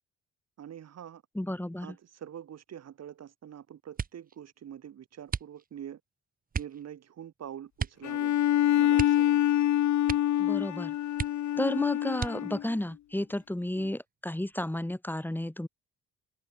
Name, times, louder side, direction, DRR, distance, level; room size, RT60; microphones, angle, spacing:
voice 1, 0.6-1.2 1.8-6.0 6.5-8.4 8.8-9.6 11.6-11.7 13.8-13.9, right 9 dB, 60° right, 2.3 m, -45 dB
voice 2, 1.4-2.0 10.4-10.9 11.6-15.7, left 1 dB, 5° left, 3.5 m, -32 dB
sound 1, 3.9-4.4 5.3-5.9 6.5-6.8 7.8-8.1 8.4-8.5 8.9-9.7 10.0-10.5 10.8-10.9 11.1-11.7 12.1-12.7 13.4-14.0 14.4-14.8, right 6 dB, 30° right, 0.8 m, -36 dB
Bowed string instrument, 8.0-12.7, left 12 dB, 65° left, 1.2 m, -26 dB
cardioid pair, 90°, 30 cm